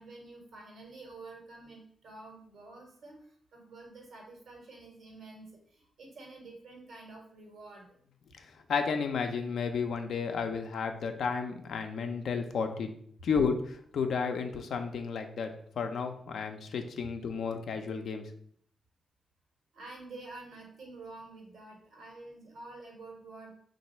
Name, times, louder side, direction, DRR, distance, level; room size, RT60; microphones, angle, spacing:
voice 1, 0.0-8.0 19.7-23.5, right 2 dB, 80° right, 0 dB, 1.4 m, -49 dB
voice 2, 8.7-12.9 13.2-15.5 15.8-18.3, left 5 dB, 75° left, 6 dB, 0.4 m, -32 dB
3.2 x 2.6 x 4.2 m, 0.62 s
cardioid pair, 55°, 0 cm